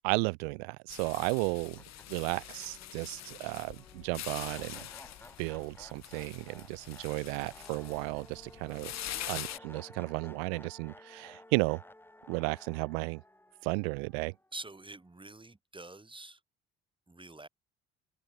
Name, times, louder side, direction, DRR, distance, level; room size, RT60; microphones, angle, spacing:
voice 1, 0.0-1.8 2.1-4.8 5.4-8.9 9.3-11.8 12.3-13.2 13.6-14.3, right 34 dB, 65° right, 0.9 m, -34 dB
sound 1, 0.9-9.6, left 12 dB, 55° left, 5.0 m, -44 dB
sound 2, 1.3-1.4 1.7-14.8, left 1 dB, 5° left, 3.1 m, -55 dB
voice 2, 14.5-16.4 17.1-17.5, right 2 dB, 15° right, 4.7 m, -46 dB
figure-of-eight pair, 55°, 33 cm